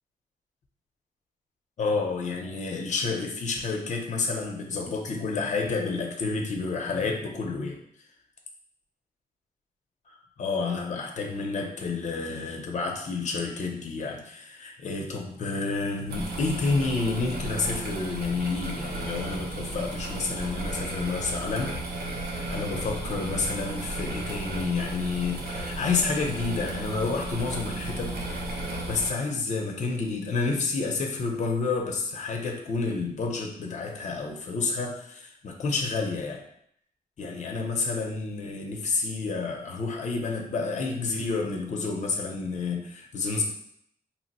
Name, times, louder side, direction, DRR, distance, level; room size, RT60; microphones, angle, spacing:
voice 1, 1.8-7.8 10.1-21.7 22.0-22.2 22.5-36.4 37.2-43.4, left 4 dB, 50° left, 1 dB, 0.6 m, -30 dB
sound 1, 16.1-29.1, right 2 dB, 90° right, 0.6 m, -34 dB
2.9 x 2.0 x 4.0 m, 0.71 s
wide cardioid pair, 165°, 16 cm